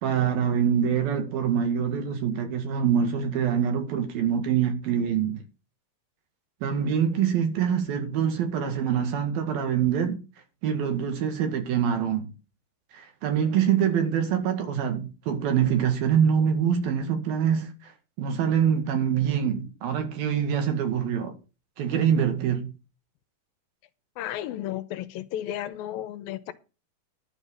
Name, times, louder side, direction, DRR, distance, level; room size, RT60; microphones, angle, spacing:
voice 1, 0.0-5.4 6.6-10.2 10.6-12.3 12.9-17.9 18.2-21.3 21.8-22.7, right 8 dB, 75° right, 3.7 m, -25 dB
voice 2, 24.2-26.5, left 12 dB, 80° left, 2.4 m, -34 dB
11.5 x 5.5 x 7.4 m
omnidirectional pair, 4.3 m